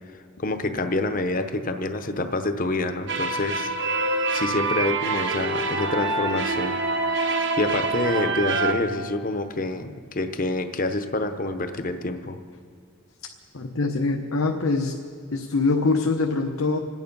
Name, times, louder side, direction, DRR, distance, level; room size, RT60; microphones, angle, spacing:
voice 1, 0.4-3.7 4.3-6.8 7.1-12.4, left 2 dB, 40° left, 8 dB, 0.8 m, -27 dB
sound 1, 3.1-8.7, right 3 dB, 55° right, 1.1 m, -25 dB
voice 2, 13.5-14.9 15.3-16.8, left 3 dB, 75° left, 2 dB, 0.9 m, -23 dB
26.5 x 9.6 x 5.4 m, 2.2 s
head